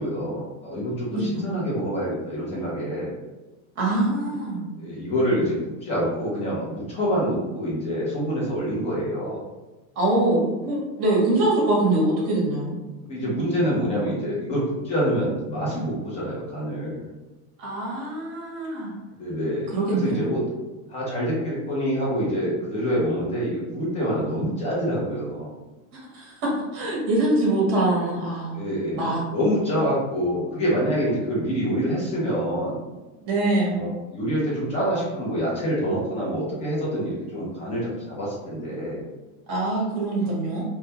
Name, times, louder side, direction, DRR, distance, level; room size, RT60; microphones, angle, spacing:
voice 1, 0.0-3.2 4.8-5.5 5.8-9.4 13.1-17.0 19.2-20.4 20.9-25.5 28.5-32.8 33.7-39.0, equal, 15° left, -6 dB, 0.4 m, -26 dB
voice 2, 3.8-4.6 10.0-12.8 17.6-18.9 19.7-20.3 26.1-28.5 28.9-29.2 33.2-33.8 39.5-40.6, right 2 dB, 30° right, -4 dB, 0.8 m, -23 dB
2.2 x 2.1 x 2.7 m, 1.1 s
supercardioid pair, 165°, 42 cm